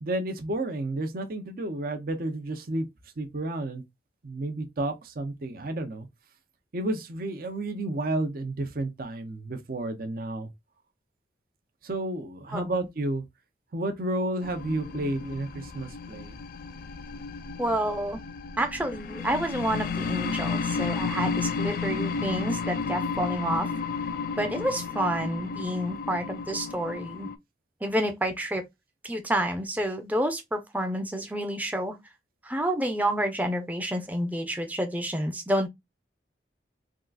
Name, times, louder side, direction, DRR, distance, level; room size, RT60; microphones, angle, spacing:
voice 1, 0.0-2.9 3.2-3.8 4.2-6.1 6.7-10.5 11.8-13.2 13.7-16.4, right 2 dB, 50° right, 0.6 m, -31 dB
voice 2, 12.5-12.9 17.6-18.2 18.6-23.7 24.4-27.3 27.8-28.6 29.0-31.9 32.4-35.7, right 1 dB, 10° right, 0.5 m, -29 dB
sound 1, 14.4-27.4, left 5 dB, 50° left, 0.3 m, -32 dB
3.6 x 2.4 x 2.3 m
head